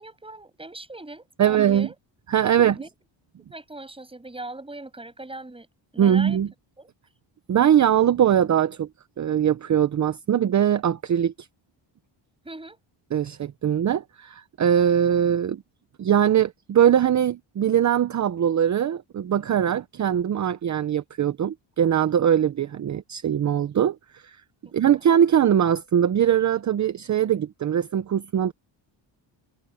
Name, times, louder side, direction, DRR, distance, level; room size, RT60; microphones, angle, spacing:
voice 1, 0.0-1.9 2.5-2.9 3.5-5.7 5.9-6.4 6.8-6.9 12.4-12.8 24.9-25.0, right 2 dB, 10° right, 7.4 m, -40 dB
voice 2, 1.4-1.9 2.3-2.8 6.0-6.5 7.5-8.9 9.2-11.3 13.1-15.6 16.0-24.4 24.7-28.5, right 9 dB, 40° right, 0.8 m, -21 dB
cardioid pair, 130°, 46 cm